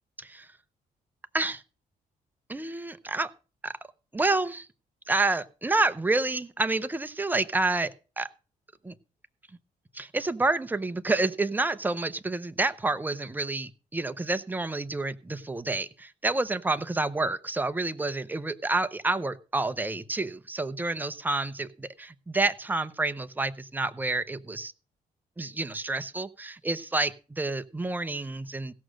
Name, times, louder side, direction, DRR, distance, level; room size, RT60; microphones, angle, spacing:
voice 1, 2.5-3.3 3.6-3.7 4.1-4.7 5.1-8.3 8.8-8.9 9.9-24.7 25.4-28.7, right 2 dB, 10° right, 11 dB, 0.7 m, -29 dB
16.5 x 6.3 x 6.4 m, 0.35 s
cardioid pair, 130°, 16 cm